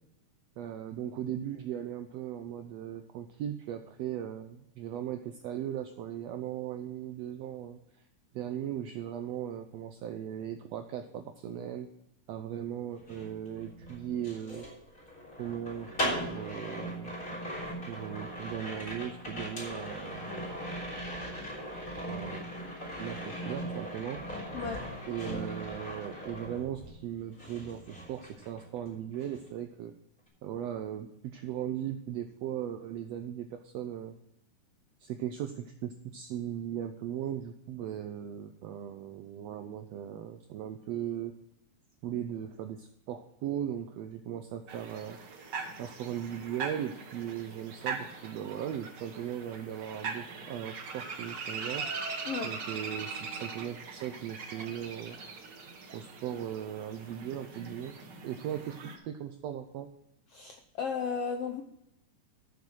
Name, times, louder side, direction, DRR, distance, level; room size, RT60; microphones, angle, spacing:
voice 1, 0.6-7.8 8.3-11.9 12.3-14.7 15.4-17.1 17.9-20.4 22.1-22.4 23.0-24.2 25.1-29.9 30.4-34.1 35.0-41.3 42.0-45.2 45.8-51.8 52.4-55.2 55.9-57.9 58.2-59.9, right 10 dB, 90° right, 7 dB, 1.4 m, -38 dB
sound 1, 12.9-27.1 27.4-28.9 29.1-29.5, equal, 30° left, 3.8 m, -39 dB
sound 2, 44.7-59.0, right 5 dB, 55° right, 1.1 m, -41 dB
voice 2, 60.3-61.6, left 6 dB, 80° left, 5 dB, 1.3 m, -34 dB
13.0 x 7.0 x 4.5 m, 0.80 s
omnidirectional pair, 3.8 m